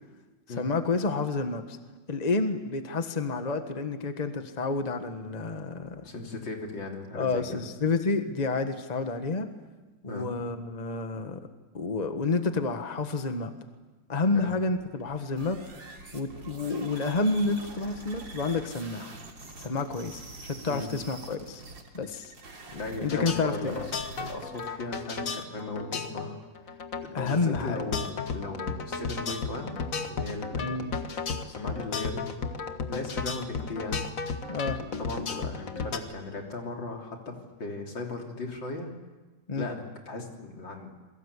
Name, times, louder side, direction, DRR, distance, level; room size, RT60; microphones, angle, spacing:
voice 1, 0.5-1.8 2.1-6.0 7.1-9.5 10.0-11.5 11.7-13.5 14.1-15.6 16.1-19.2 19.6-21.6 21.9-22.3 23.0-23.8 27.1-27.9 30.6-30.9 34.5-34.8 39.5-39.7, left 3 dB, 25° left, 7 dB, 1.5 m, -29 dB
voice 2, 6.0-7.6 10.1-10.3 14.4-14.6 20.7-20.9 22.7-23.8 24.2-26.4 26.6-29.8 30.1-30.7 31.5-32.5 32.9-34.0 35.0-37.3 37.6-38.9 39.6-40.9, left 3 dB, 85° left, 1 dB, 4.1 m, -37 dB
sound 1, 14.8-24.7, right 3 dB, 90° right, 3.8 m, -46 dB
sound 2, 23.0-36.0, left 5 dB, 50° left, 1.9 m, -34 dB
28.5 x 22.5 x 8.4 m, 1.2 s
omnidirectional pair, 2.0 m